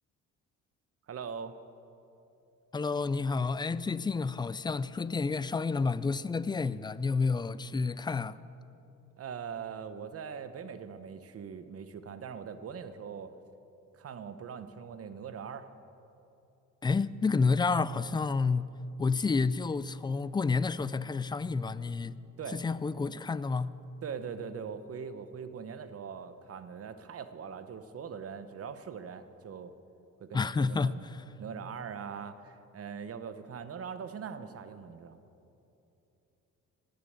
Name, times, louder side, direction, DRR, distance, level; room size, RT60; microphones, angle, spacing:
voice 1, 1.1-1.5 9.2-13.3 13.9-15.7 22.4-22.6 24.0-29.7 30.2-31.0 31.4-35.2, right 6 dB, 50° right, 0.9 m, -41 dB
voice 2, 2.7-8.4 16.8-18.7 19.0-22.2 22.5-23.7 30.3-31.2, left 4 dB, 15° left, 0.3 m, -30 dB
18.0 x 6.8 x 8.0 m
cardioid pair, 90°, 30 cm